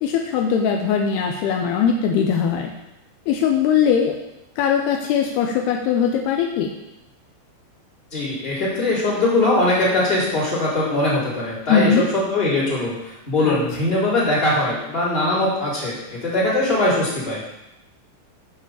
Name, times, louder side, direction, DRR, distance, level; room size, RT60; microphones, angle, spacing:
voice 1, 0.0-2.7 3.3-4.2 4.6-6.7 11.7-12.0 13.4-13.6, left 7 dB, 90° left, 2 dB, 2.2 m, -20 dB
voice 2, 8.1-17.4, left 2 dB, 15° left, -8 dB, 3.2 m, -21 dB
7.7 x 6.4 x 6.9 m, 0.92 s
omnidirectional pair, 5.5 m